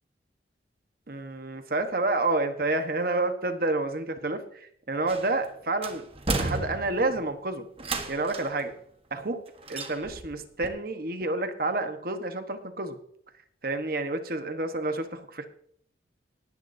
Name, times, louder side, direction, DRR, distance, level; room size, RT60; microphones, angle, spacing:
voice 1, 1.1-6.0 6.4-7.7 8.1-8.7 9.1-9.4 9.7-13.0 13.6-15.5, right 2 dB, 55° right, 7 dB, 1.3 m, -29 dB
sound 1, 5.1-5.5 5.8-7.2 7.8-8.6 9.7-10.3 10.6-10.7, right 2 dB, 30° right, 1.4 m, -32 dB
19.0 x 10.0 x 2.7 m, 0.65 s
head